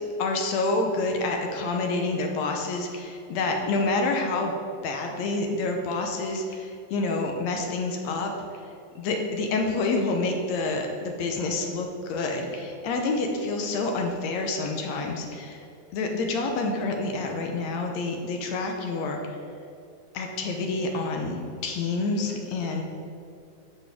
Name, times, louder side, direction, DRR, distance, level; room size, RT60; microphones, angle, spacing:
voice 1, 0.2-4.5 4.8-8.3 9.0-19.2 20.1-22.8, left 3 dB, 75° left, 2 dB, 1.8 m, -28 dB
11.0 x 6.8 x 3.6 m, 2.5 s
omnidirectional pair, 3.6 m